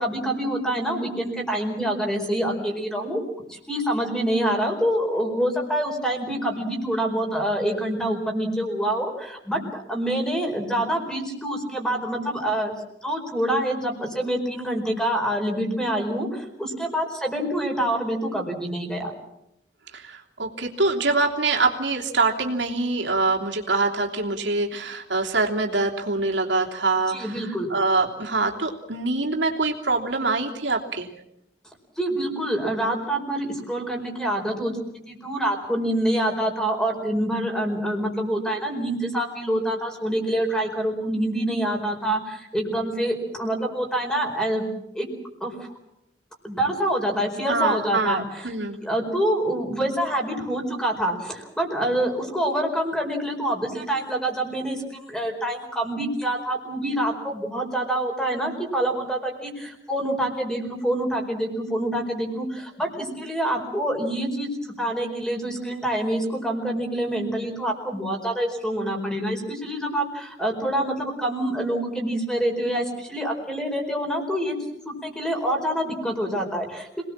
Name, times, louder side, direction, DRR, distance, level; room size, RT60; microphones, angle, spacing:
voice 1, 0.0-3.2 3.5-12.7 13.0-19.1 27.1-27.7 32.0-34.7 35.1-44.6 44.9-45.1 45.4-45.5 46.4-48.5 48.8-74.6 74.8-77.0, right 1 dB, 5° left, 2 dB, 4.6 m, -26 dB
voice 2, 19.9-31.1 47.5-48.8, right 3 dB, 85° right, 1 dB, 3.1 m, -24 dB
27.0 x 19.5 x 7.4 m, 0.82 s
head